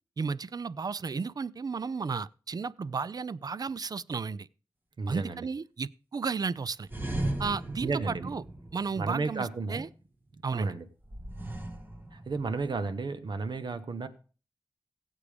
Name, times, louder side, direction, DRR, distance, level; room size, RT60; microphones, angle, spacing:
voice 1, 0.2-4.5 5.1-6.9 7.4-8.4 8.7-9.9 10.4-10.7, right 5 dB, 55° right, 0.4 m, -33 dB
voice 2, 5.0-5.5 7.8-8.3 9.0-9.9 10.5-10.8 12.1-14.1, right 4 dB, 70° right, 1.1 m, -33 dB
sound 1, 6.8-9.5 11.0-12.8, right 1 dB, 25° right, 1.7 m, -37 dB
16.5 x 8.3 x 3.5 m
cardioid pair, 50°, 8 cm